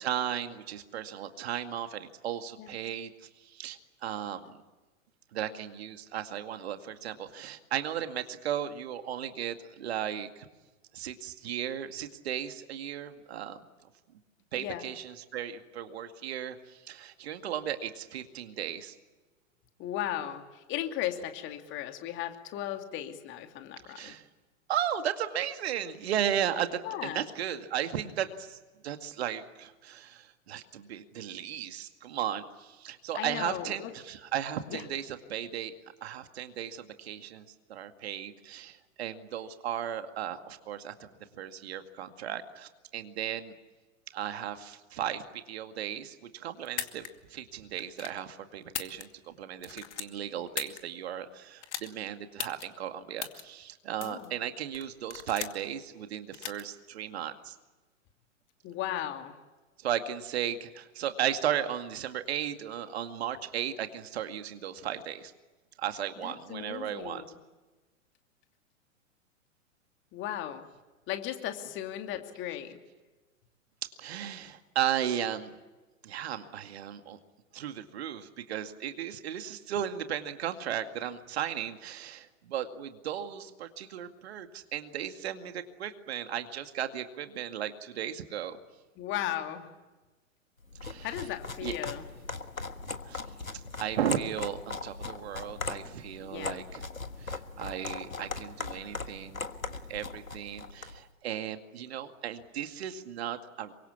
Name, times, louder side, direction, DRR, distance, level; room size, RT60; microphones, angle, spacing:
voice 1, 0.0-3.1 3.4-4.6 5.3-10.5 10.9-13.6 14.5-18.9 24.0-24.3 24.7-28.6 28.8-35.7 36.0-37.4 37.7-41.1 41.3-43.5 44.1-57.6 59.8-65.3 65.8-67.2 73.8-75.5 76.0-77.2 77.5-88.6 90.8-91.1 91.6-91.7 93.0-93.2 93.5-96.8 97.2-99.4 99.7-103.7, right 10 dB, 50° right, 8 dB, 2.2 m, -35 dB
voice 2, 14.5-14.8 19.8-24.2 26.8-27.2 33.1-33.9 34.7-34.8 54.0-54.3 58.6-59.4 66.2-67.4 70.1-70.6 71.1-72.8 89.0-89.7 91.0-92.0 96.2-96.6, left 12 dB, 30° left, 6 dB, 2.6 m, -36 dB
sound 1, 46.7-47.1 47.8-48.2 48.6-49.3 49.6-50.8 51.6-51.9 52.4-52.7 53.2-53.4 54.0-54.3 54.7-55.7 56.3-56.6, left 9 dB, 60° left, 2.4 m, -37 dB
sound 2, 90.7-101.0, left 3 dB, 85° left, 1.7 m, -39 dB
28.0 x 24.5 x 8.5 m, 1.2 s
figure-of-eight pair, 105°, 40 cm